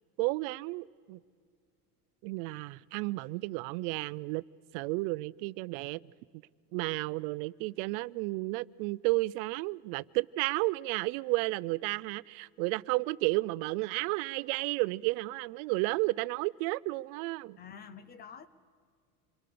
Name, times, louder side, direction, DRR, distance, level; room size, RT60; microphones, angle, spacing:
voice 1, 0.2-1.2 2.2-4.4 4.7-6.0 6.7-17.6, right 22 dB, 80° right, 0.6 m, -32 dB
voice 2, 17.6-18.5, left 7 dB, 20° left, 0.6 m, -48 dB
26.5 x 23.0 x 6.8 m
cardioid pair, 175°, 42 cm